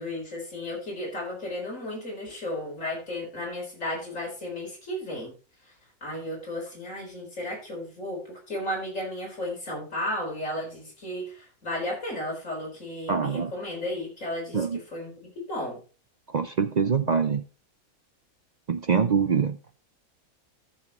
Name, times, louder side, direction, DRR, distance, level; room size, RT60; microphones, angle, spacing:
voice 1, 0.0-5.3 6.0-15.8, left 1 dB, 60° left, -2 dB, 4.6 m, -34 dB
voice 2, 13.1-13.5 14.5-14.8 16.3-17.4 18.7-19.6, right 6 dB, 65° right, 9 dB, 0.4 m, -24 dB
14.0 x 7.2 x 3.0 m, 0.35 s
omnidirectional pair, 1.5 m